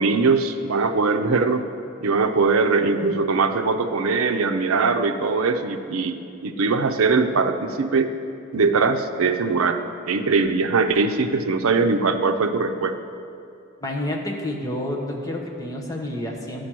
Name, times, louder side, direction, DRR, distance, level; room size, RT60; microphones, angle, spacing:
voice 1, 0.0-1.6 2.0-8.1 8.5-9.8 10.1-13.0, right 4 dB, 85° right, 8 dB, 0.6 m, -21 dB
voice 2, 13.8-16.7, left 1 dB, 15° left, 0 dB, 0.9 m, -29 dB
11.5 x 5.1 x 6.0 m, 2.6 s
head